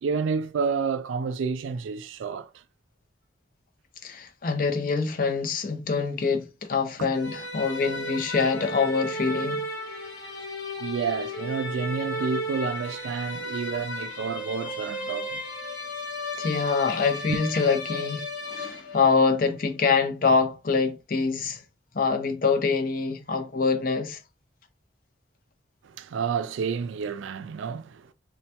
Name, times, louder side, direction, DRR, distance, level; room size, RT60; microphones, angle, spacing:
voice 1, 0.0-2.6 7.0-7.1 10.8-15.4 17.3-17.4 25.8-28.1, right 5 dB, 85° right, 0.3 m, -30 dB
voice 2, 4.0-9.6 16.3-21.6 21.9-24.2, left 4 dB, 45° left, 0.5 m, -25 dB
sound 1, 7.1-19.2, left 1 dB, 85° left, 1.1 m, -34 dB
3.2 x 2.2 x 2.8 m
head